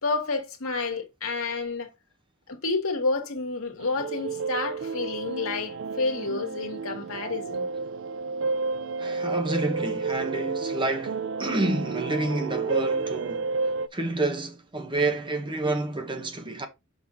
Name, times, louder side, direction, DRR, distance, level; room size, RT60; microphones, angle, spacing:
voice 1, 0.0-1.9 2.5-7.7, left 3 dB, 70° left, 1.8 m, -29 dB
sound 1, 3.8-13.9, right 4 dB, 60° right, 0.4 m, -31 dB
voice 2, 9.0-13.5 13.9-16.7, right 2 dB, 20° right, 1.2 m, -29 dB
6.4 x 5.4 x 3.7 m
head